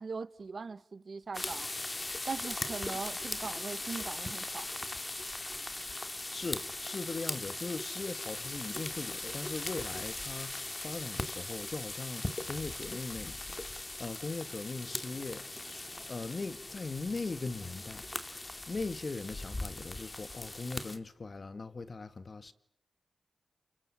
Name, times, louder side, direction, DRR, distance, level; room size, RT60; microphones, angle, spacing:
voice 1, 0.0-1.7 2.3-4.7, right 4 dB, 55° right, 1.6 m, -40 dB
sound 1, 1.3-21.0, left 2 dB, 25° left, 2.4 m, -39 dB
voice 2, 6.3-18.1 18.7-22.5, left 3 dB, 45° left, 2.0 m, -40 dB
28.5 x 23.5 x 8.6 m
cardioid pair, 65°, 0 cm